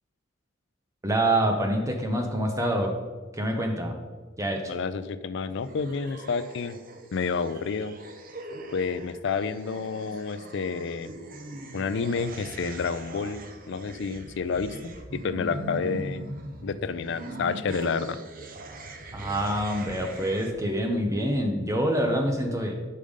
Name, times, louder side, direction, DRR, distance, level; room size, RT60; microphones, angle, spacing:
voice 1, 1.0-3.0 3.3-4.0 4.4-4.7 19.1-22.7, right 1 dB, 15° right, 3 dB, 0.8 m, -26 dB
voice 2, 4.7-6.8 7.1-8.0 8.7-11.1 11.7-13.4 13.7-16.2 16.6-18.2, left 5 dB, 65° left, 13 dB, 0.4 m, -29 dB
sound 1, 5.5-20.5, right 1 dB, 45° right, 0.8 m, -41 dB
6.6 x 5.4 x 5.0 m, 1.4 s
head